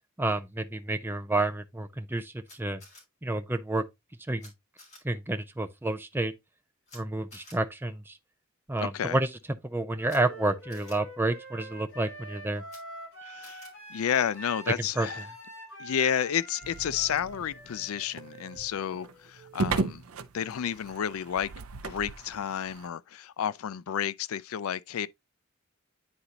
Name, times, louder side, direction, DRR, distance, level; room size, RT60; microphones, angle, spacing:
voice 1, 0.2-2.8 3.2-3.8 4.3-4.5 5.0-6.3 6.9-8.2 8.7-9.3 9.6-12.6 15.0-15.1, right 2 dB, 10° right, 0.6 m, -29 dB
Camera, 2.4-3.0 4.4-4.5 4.8-5.0 6.9-7.0 7.3-7.6 10.0-10.2 10.7-10.9 12.6-12.8 13.4-13.7, left 2 dB, 35° left, 3.3 m, -51 dB
voice 2, 8.8-9.2 13.2-13.6 13.9-15.3 15.8-20.0 20.3-21.5 21.8-25.1, left 9 dB, 80° left, 0.4 m, -31 dB
Wind instrument woodwind instrument, 9.9-19.8, right 1 dB, 55° left, 4.6 m, -45 dB
sound 1, 16.6-22.9, right 4 dB, 90° right, 0.6 m, -36 dB
9.6 x 3.9 x 2.8 m
head